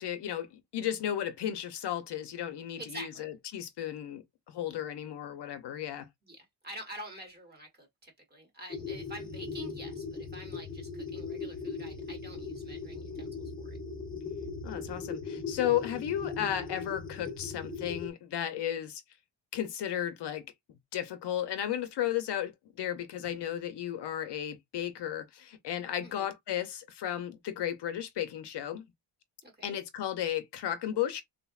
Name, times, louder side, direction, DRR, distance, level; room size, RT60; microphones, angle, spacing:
voice 1, 0.0-6.1 14.6-19.0 19.5-20.4 20.9-28.9 29.6-31.2, left 11 dB, 60° left, 0.5 m, -34 dB
voice 2, 2.8-3.3 6.2-6.4 6.6-13.3 13.6-13.8 26.0-26.3 29.4-29.8, right 1 dB, 20° right, 0.9 m, -47 dB
sound 1, 8.7-18.1, left 4 dB, 10° left, 0.4 m, -39 dB
3.6 x 2.0 x 2.3 m
wide cardioid pair, 170°, 47 cm